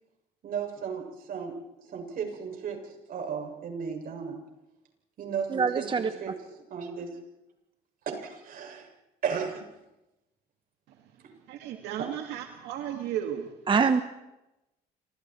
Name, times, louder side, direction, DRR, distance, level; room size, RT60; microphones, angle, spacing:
voice 1, 0.4-4.4 5.2-6.3 6.7-7.2 8.0-8.9 9.2-9.7 12.0-12.1, right 6 dB, 60° right, 3 dB, 7.1 m, -35 dB
voice 2, 5.5-6.1 13.7-14.0, right 5 dB, 30° right, 9 dB, 1.2 m, -24 dB
voice 3, 10.9-13.6, right 10 dB, 85° right, 4 dB, 2.2 m, -35 dB
29.0 x 26.0 x 4.7 m, 0.95 s
cardioid pair, 110°, 17 cm